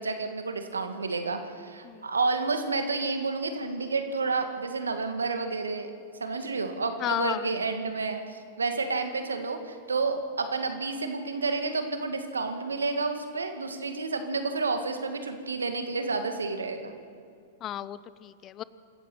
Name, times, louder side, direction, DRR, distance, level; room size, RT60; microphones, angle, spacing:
voice 1, 0.0-5.9 6.2-17.0, right 3 dB, 80° right, 7 dB, 2.0 m, -30 dB
voice 2, 7.0-7.5 17.6-18.6, left 12 dB, 30° left, 17 dB, 0.7 m, -33 dB
25.5 x 14.5 x 7.9 m, 2.3 s
figure-of-eight pair, 100°, 0 cm